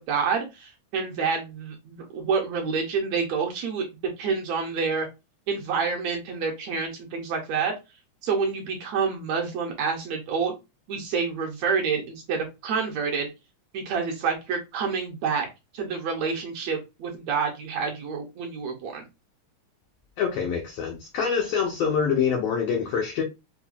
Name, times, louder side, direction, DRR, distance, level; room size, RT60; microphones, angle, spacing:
voice 1, 0.0-3.9 4.2-5.1 5.5-7.7 8.2-10.6 10.9-13.3 13.7-15.5 15.7-19.1, right 5 dB, 75° right, 1.7 m, -28 dB
voice 2, 20.2-23.2, left 6 dB, 85° left, 1.4 m, -25 dB
5.6 x 2.2 x 2.3 m
omnidirectional pair, 3.5 m